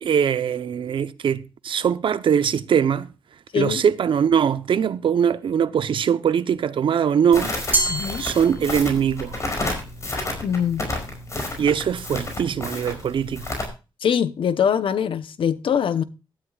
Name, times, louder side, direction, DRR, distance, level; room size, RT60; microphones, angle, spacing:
voice 1, 0.0-3.1 3.5-7.5 8.2-9.4 11.6-13.5, right 8 dB, 70° right, 0.8 m, -21 dB
Crackle, 7.3-13.7, left 2 dB, 35° left, 5.3 m, -31 dB
Glass, 7.7-9.2, right 2 dB, 20° right, 3.5 m, -26 dB
voice 2, 7.9-8.2 10.4-10.9 14.0-16.0, left 8 dB, 75° left, 0.9 m, -23 dB
17.5 x 12.5 x 2.4 m
wide cardioid pair, 115°, 9 cm